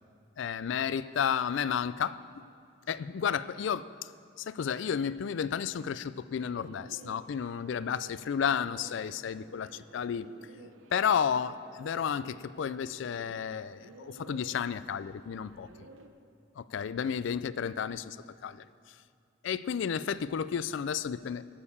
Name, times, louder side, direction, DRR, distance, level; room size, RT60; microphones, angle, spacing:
voice 1, 0.4-2.4 2.9-4.1 4.4-10.3 10.9-15.7 16.6-18.2 18.4-18.6 19.4-21.4, left 7 dB, 65° left, 16 dB, 0.3 m, -32 dB
Bird, 6.4-16.1, right 2 dB, 75° right, 0.8 m, -53 dB
12.5 x 6.6 x 7.1 m, 2.3 s
head